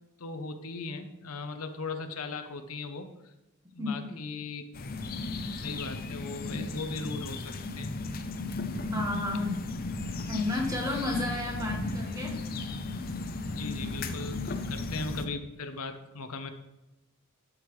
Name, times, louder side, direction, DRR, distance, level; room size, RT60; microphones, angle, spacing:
voice 1, 0.2-3.1 3.7-4.7 5.5-7.9 13.5-16.5, left 3 dB, 90° left, 8 dB, 0.9 m, -38 dB
voice 2, 3.8-4.2 8.9-9.5 10.3-12.4, left 2 dB, 15° right, 0 dB, 1.5 m, -32 dB
sound 1, 4.7-15.3, left 3 dB, 40° left, 0.6 m, -35 dB
12.0 x 6.5 x 3.2 m, 0.98 s
head